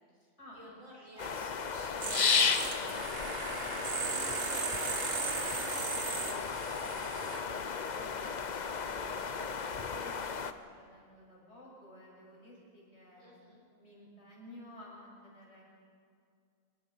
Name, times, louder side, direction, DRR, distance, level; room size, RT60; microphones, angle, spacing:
voice 1, 0.1-6.4 13.2-13.6, right 1 dB, 80° right, -3 dB, 6.4 m, -55 dB
sound 1, 1.2-10.5, left 5 dB, 40° left, 0.8 m, -34 dB
sound 2, 2.0-7.4, right 5 dB, 60° right, 1.6 m, -37 dB
voice 2, 6.8-10.5 10.7-13.3 13.8-15.6, left 1 dB, 60° left, -4 dB, 7.2 m, -54 dB
25.5 x 22.0 x 5.6 m, 2.3 s
omnidirectional pair, 1.4 m